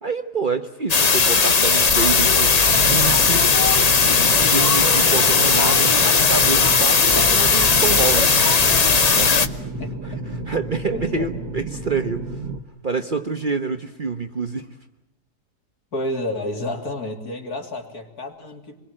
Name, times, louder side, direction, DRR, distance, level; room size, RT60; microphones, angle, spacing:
voice 1, 0.0-3.5 4.5-8.4 9.1-9.3 9.6-9.7 10.0-12.4 12.8-14.7, right 4 dB, 35° right, 8 dB, 1.0 m, -27 dB
sound 1, 0.9-9.5, left 5 dB, 30° left, 0.8 m, -17 dB
sound 2, 2.7-12.6, right 2 dB, 75° right, 2.3 m, -32 dB
voice 2, 10.9-11.3 15.9-18.8, left 1 dB, 65° left, 3 dB, 3.5 m, -30 dB
26.5 x 22.0 x 7.6 m, 0.96 s
omnidirectional pair, 1.7 m